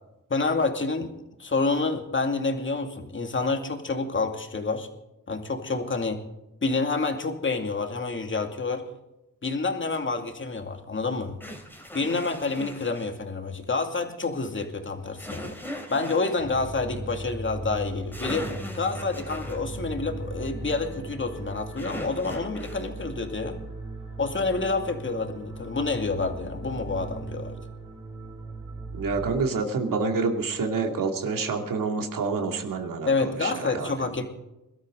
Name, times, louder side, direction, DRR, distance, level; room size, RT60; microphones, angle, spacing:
voice 1, 0.3-1.1 1.4-4.9 5.3-6.2 6.6-8.8 9.4-11.4 11.9-23.6 24.2-27.6 33.1-34.3, left 3 dB, 35° left, 5 dB, 2.4 m, -28 dB
sound 1, 9.9-10.0 11.4-13.1 15.2-16.4 17.8-17.9 18.1-19.7 21.8-22.9, equal, 5° left, 3.2 m, -39 dB
sound 2, 16.4-29.3, right 2 dB, 20° right, 4.3 m, -38 dB
voice 2, 28.9-33.9, right 4 dB, 85° right, 4 dB, 2.5 m, -28 dB
22.5 x 12.5 x 3.8 m, 0.94 s
cardioid pair, 95°, 32 cm